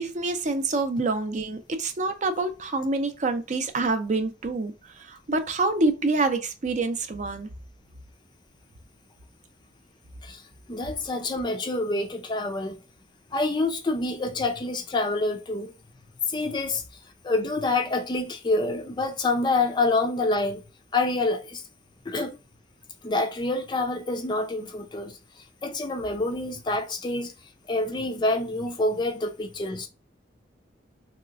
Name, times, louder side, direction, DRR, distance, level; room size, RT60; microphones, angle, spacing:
voice 1, 0.0-7.5, right 3 dB, 40° right, 0.5 m, -27 dB
voice 2, 10.7-12.7 13.3-15.7 16.3-16.8 17.2-20.6 20.9-21.6 22.1-22.4 23.0-25.2 25.6-27.3 27.7-29.9, left 2 dB, 25° left, 0.4 m, -27 dB
3.2 x 2.8 x 2.4 m
head